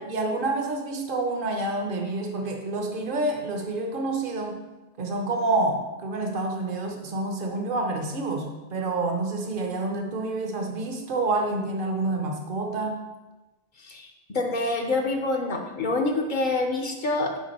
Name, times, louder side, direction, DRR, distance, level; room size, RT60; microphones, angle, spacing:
voice 1, 0.1-4.6 5.0-13.0, right 2 dB, 55° right, 3 dB, 1.0 m, -28 dB
voice 2, 13.8-17.4, left 2 dB, 55° left, 2 dB, 0.9 m, -27 dB
6.0 x 5.1 x 4.2 m, 1.1 s
omnidirectional pair, 1.0 m